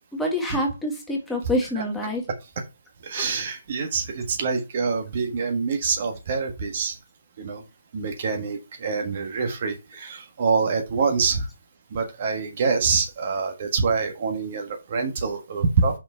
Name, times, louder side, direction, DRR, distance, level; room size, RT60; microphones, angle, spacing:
voice 1, 0.1-2.2 3.2-3.3, left 1 dB, 5° left, -1 dB, 1.8 m, -26 dB
voice 2, 3.0-7.0 7.4-7.6 7.9-11.5 11.9-16.0, right 5 dB, 40° right, 4 dB, 1.5 m, -25 dB
5.9 x 4.7 x 4.4 m, 0.25 s
figure-of-eight pair, 135°, 0 cm